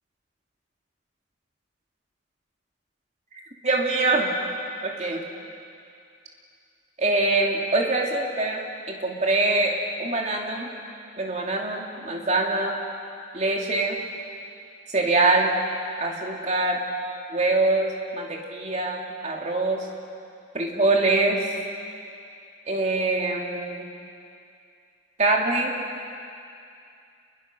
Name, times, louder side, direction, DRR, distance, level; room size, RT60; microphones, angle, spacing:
voice 1, 3.3-4.3 4.8-5.2 7.0-8.6 8.9-10.7 11.2-12.8 13.3-14.0 14.9-15.5 16.0-16.8 17.3-19.9 20.5-21.5 22.7-23.9 25.2-25.8, right 2 dB, 35° right, 0 dB, 2.7 m, -24 dB
28.5 x 21.5 x 6.2 m, 2.5 s
head